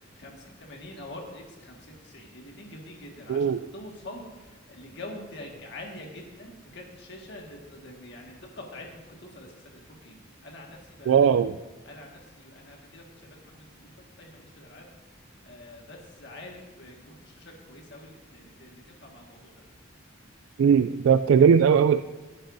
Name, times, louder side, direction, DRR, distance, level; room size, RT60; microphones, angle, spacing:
voice 1, 0.2-9.5 9.7-10.1 10.4-11.4 11.9-14.9 15.5-19.6, left 1 dB, 60° left, 0 dB, 1.8 m, -45 dB
voice 2, 11.1-11.6 20.6-22.0, right 7 dB, 80° right, 12 dB, 0.3 m, -19 dB
17.5 x 10.0 x 2.7 m, 1.3 s
head